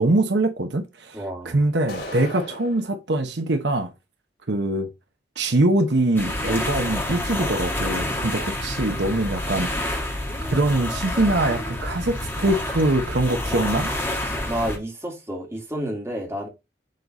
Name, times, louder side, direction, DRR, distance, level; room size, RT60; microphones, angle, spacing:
voice 1, 0.0-3.9 4.5-4.9 5.4-9.8 10.4-13.9, right 2 dB, 75° right, 1.0 m, -23 dB
voice 2, 1.1-1.6 8.4-8.5 14.5-16.5, equal, 15° right, 2.2 m, -30 dB
sound 1, 1.9-2.9, left 1 dB, 65° left, 3.8 m, -36 dB
sound 2, 6.1-14.8, left 1 dB, 10° left, 1.8 m, -28 dB
7.7 x 4.0 x 4.1 m
head